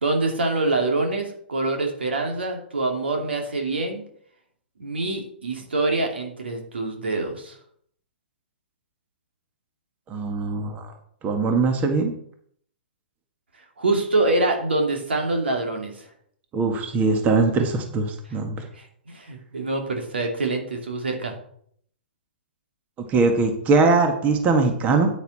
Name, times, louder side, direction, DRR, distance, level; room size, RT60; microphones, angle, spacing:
voice 1, 0.0-4.0 4.8-7.6 13.8-16.1 18.8-21.3, right 2 dB, 80° right, 3 dB, 2.6 m, -25 dB
voice 2, 10.1-10.9 11.2-12.1 16.5-18.6 23.1-25.1, right 3 dB, 25° right, 5 dB, 1.7 m, -21 dB
9.2 x 9.2 x 4.2 m, 0.64 s
hypercardioid pair, 115°, 6 cm